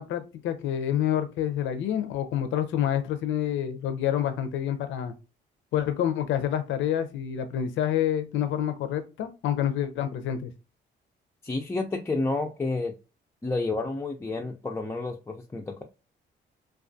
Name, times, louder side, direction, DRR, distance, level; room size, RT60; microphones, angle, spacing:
voice 1, 0.0-5.1 5.7-10.5, left 10 dB, 75° left, 9 dB, 0.5 m, -28 dB
voice 2, 11.4-13.0 13.4-15.8, left 3 dB, 15° left, 1 dB, 0.3 m, -30 dB
2.3 x 2.3 x 2.5 m, 0.30 s
cardioid pair, 90°, 20 cm